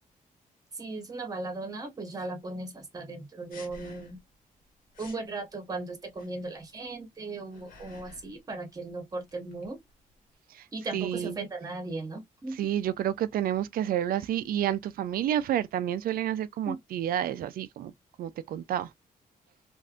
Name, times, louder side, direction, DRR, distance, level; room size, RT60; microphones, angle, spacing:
voice 1, 0.7-4.2 5.0-9.8 10.7-12.6 16.7-16.8, right 3 dB, 25° right, 1.1 m, -37 dB
sound 1, 3.5-4.3 4.6-4.7 4.9-5.3 6.1-6.7 7.2-8.4 8.6-10.3, left 3 dB, 70° left, 1.3 m, -52 dB
voice 2, 10.9-11.4 12.6-17.9 18.2-18.9, right 11 dB, 90° right, 0.4 m, -29 dB
3.3 x 2.6 x 2.4 m
wide cardioid pair, 165°, 15 cm